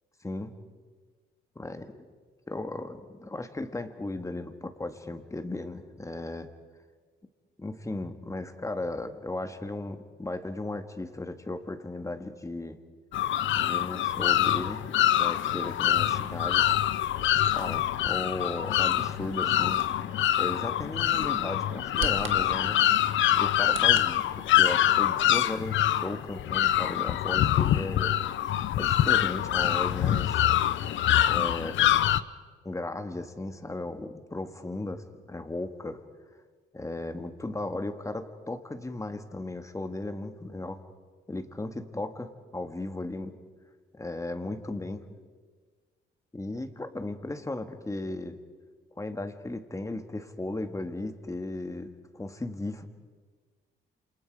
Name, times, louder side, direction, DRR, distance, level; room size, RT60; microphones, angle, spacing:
voice 1, 0.2-0.5 1.6-2.1 2.5-6.5 7.6-12.8 13.6-14.8 15.1-16.7 17.5-19.8 20.4-22.8 23.3-28.2 28.8-30.4 31.2-31.9 32.6-36.0 36.7-40.8 41.3-43.4 43.9-45.0 46.3-48.4 49.0-52.8, left 2 dB, 15° left, 7 dB, 1.9 m, -36 dB
sound 1, 13.1-32.2, left 12 dB, 75° left, 0.7 m, -25 dB
Bird vocalization bird call bird song, 18.0-24.1, right 8 dB, 75° right, 1.6 m, -44 dB
28.0 x 27.5 x 4.9 m, 1.5 s
cardioid pair, 90°, 20 cm